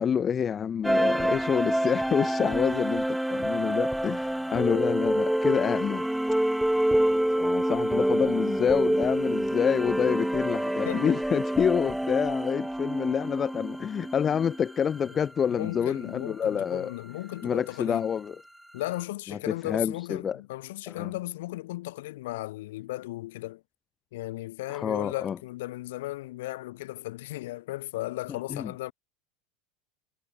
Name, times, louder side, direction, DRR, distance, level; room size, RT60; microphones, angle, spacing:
voice 1, 0.0-6.1 7.4-16.9 17.4-18.4 19.3-20.4 20.9-21.1 24.7-25.4 28.5-28.7, left 7 dB, 25° left, 0.4 m, -28 dB
sound 1, 0.8-15.0, right 1 dB, ahead, 0.8 m, -27 dB
voice 2, 10.8-11.2 15.5-18.1 18.7-23.6 24.1-28.9, left 17 dB, 80° left, 2.9 m, -36 dB
supercardioid pair, 130°, 0 cm